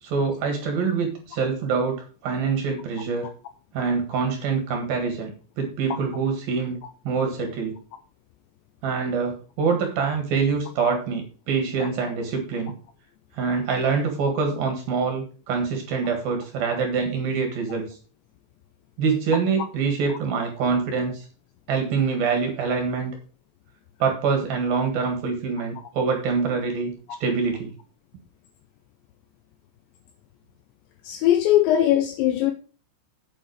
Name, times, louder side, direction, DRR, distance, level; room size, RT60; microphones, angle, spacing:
voice 1, 0.0-3.3 3.7-5.3 5.6-6.8 7.0-7.7 8.8-12.7 13.3-18.0 19.0-21.3 21.7-23.2 24.0-26.9 27.2-27.7, right 5 dB, 60° right, 2.8 m, -25 dB
voice 2, 31.0-32.5, left 12 dB, 90° left, 2.6 m, -20 dB
8.6 x 7.8 x 4.7 m
omnidirectional pair, 5.9 m